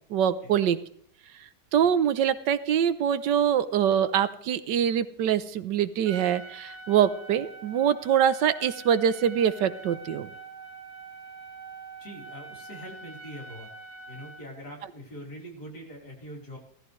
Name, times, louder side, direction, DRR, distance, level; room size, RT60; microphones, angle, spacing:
voice 1, 0.1-0.8 1.7-10.3, right 9 dB, 85° right, 13 dB, 1.5 m, -24 dB
Trumpet, 6.0-14.5, right 4 dB, 65° right, 2.1 m, -44 dB
voice 2, 12.0-13.7 14.1-16.6, equal, 65° left, -1 dB, 4.8 m, -43 dB
17.0 x 14.5 x 3.2 m, 0.63 s
omnidirectional pair, 1.9 m